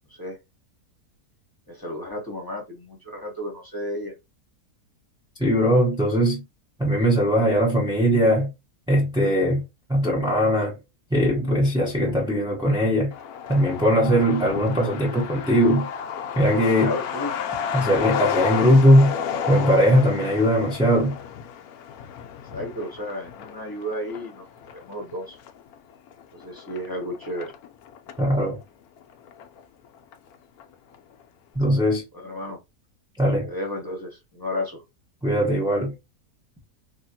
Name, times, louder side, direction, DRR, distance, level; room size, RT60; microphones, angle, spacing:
voice 1, 1.7-4.1 16.8-17.3 22.5-24.5 24.8-25.4 26.3-27.5 32.1-32.6 33.4-34.8, left 1 dB, 15° left, 0.9 m, -32 dB
voice 2, 5.4-6.4 6.8-8.5 8.9-10.8 11.1-13.1 13.5-15.9 16.4-16.9 17.7-19.1 19.5-21.2 28.2-28.6 31.5-32.0 33.2-33.5 35.2-35.9, equal, 5° right, 0.6 m, -20 dB
Truck, 13.1-28.3 28.6-28.7 29.0-29.9 30.1-30.2 30.6-31.0, left 7 dB, 75° left, 1.0 m, -32 dB
3.3 x 2.8 x 2.7 m
omnidirectional pair, 1.6 m